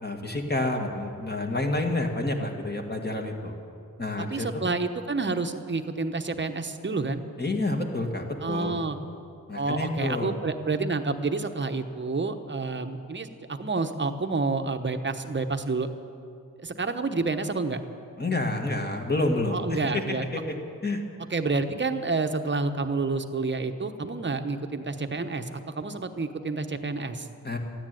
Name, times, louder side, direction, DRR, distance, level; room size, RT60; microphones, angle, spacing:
voice 1, 0.0-3.6 4.0-4.5 7.4-8.8 9.5-10.3 18.2-20.5 20.8-21.0 27.4-27.6, left 2 dB, 30° left, 3 dB, 2.0 m, -29 dB
voice 2, 4.2-7.2 8.4-9.0 9.5-15.9 16.6-17.8 19.5-20.3 21.3-27.3, right 3 dB, 30° right, 7 dB, 1.0 m, -29 dB
13.5 x 9.9 x 9.2 m, 2.5 s
cardioid pair, 65°, 35 cm